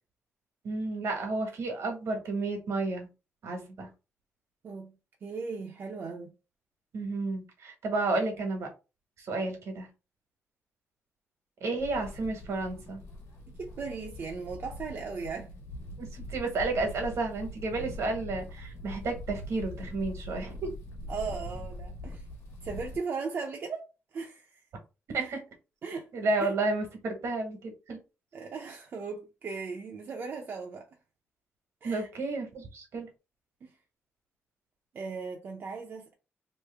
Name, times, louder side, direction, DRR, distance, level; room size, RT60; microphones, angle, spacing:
voice 1, 0.6-3.1 3.4-3.9 6.9-8.7 9.2-9.9 11.6-13.0 16.0-20.7 25.1-25.4 26.1-28.0 31.8-33.1, right 3 dB, 75° right, 1.3 m, -31 dB
voice 2, 4.6-6.4 13.6-15.5 21.1-22.2 22.6-24.6 25.1-25.3 25.8-26.1 26.4-26.5 28.3-30.9 31.8-32.1 33.6-33.7 34.9-36.1, right 5 dB, 50° right, 0.6 m, -38 dB
sound 1, 11.8-23.0, left 1 dB, 80° left, 1.2 m, -42 dB
3.1 x 2.5 x 3.4 m
cardioid pair, 130°, 5 cm